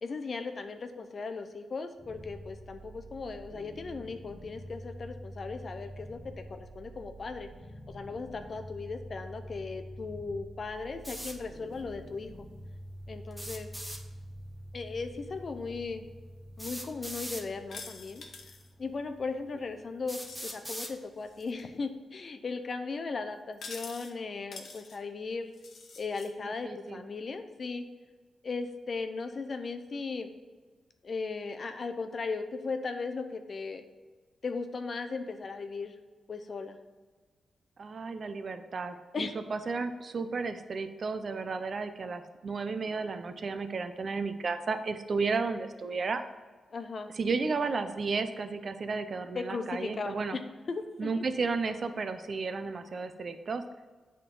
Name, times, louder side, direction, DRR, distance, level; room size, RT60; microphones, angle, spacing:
voice 1, 0.0-6.2 6.5-7.5 7.9-12.3 13.1-13.7 14.7-16.1 16.6-18.2 18.8-25.5 26.0-27.9 28.4-30.3 31.0-33.8 34.4-35.9 36.3-36.8 39.1-39.4 46.7-47.1 49.4-50.2 50.7-51.2, left 4 dB, 45° left, 8 dB, 0.6 m, -37 dB
sound 1, 2.0-21.0, equal, 15° left, 1.2 m, -47 dB
sound 2, 11.0-11.4 13.3-14.0 15.5-15.6 16.6-17.5 18.5-18.6 19.2-19.3 20.1-20.9, equal, 5° right, 0.8 m, -40 dB
sound 3, 17.7-18.7 20.1-20.7 21.2-21.6 23.5-24.1 24.5-25.0 25.5-26.3, left 4 dB, 65° left, 0.9 m, -46 dB
voice 2, 26.4-27.0 37.8-46.2 47.1-50.4 51.0-53.6, right 4 dB, 50° right, 9 dB, 0.5 m, -33 dB
8.3 x 3.7 x 5.4 m, 1.3 s
cardioid pair, 105°, 0 cm